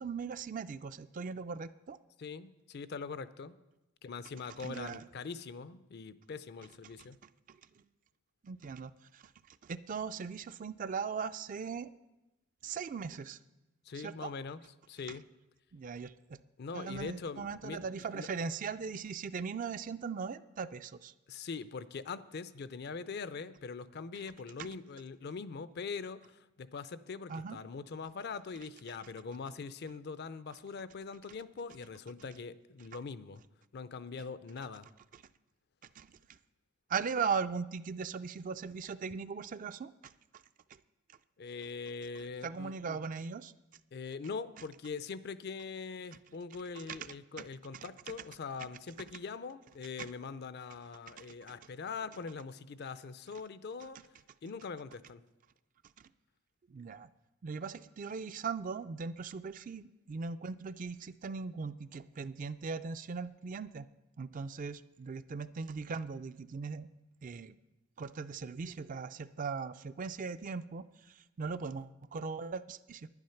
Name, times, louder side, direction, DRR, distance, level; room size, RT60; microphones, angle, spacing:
voice 1, 0.0-2.0 4.6-5.0 7.5-7.6 8.4-11.9 12.6-13.4 13.9-14.3 15.7-16.4 16.7-21.1 24.6-24.7 27.3-27.6 35.1-35.2 36.0-36.1 36.9-40.4 42.4-43.5 46.8-47.0 47.4-47.5 47.7-47.9 50.0-50.1 51.1-51.3 56.7-57.1 57.4-63.9 64.2-66.9 67.2-67.6 68.0-73.1, right 5 dB, 40° right, 13 dB, 0.3 m, -39 dB
voice 2, 2.2-3.6 4.0-7.2 13.9-15.2 16.6-17.8 18.1-18.3 21.3-33.4 33.7-34.9 41.4-43.0 43.9-54.0 54.4-55.2, left 5 dB, 50° left, 15 dB, 0.5 m, -42 dB
10.5 x 10.0 x 5.7 m, 0.97 s
head